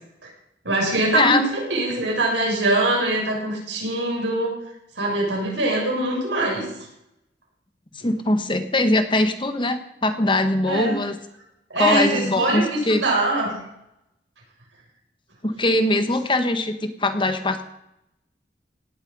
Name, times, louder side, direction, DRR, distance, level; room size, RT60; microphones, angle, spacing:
voice 1, 0.6-4.5 5.0-6.7 10.6-11.0 11.7-13.5, right 2 dB, 85° right, -1 dB, 7.0 m, -23 dB
voice 2, 8.0-11.1 11.8-13.0 15.4-17.6, left 2 dB, 30° left, 8 dB, 1.3 m, -21 dB
17.5 x 11.5 x 5.5 m, 0.82 s
head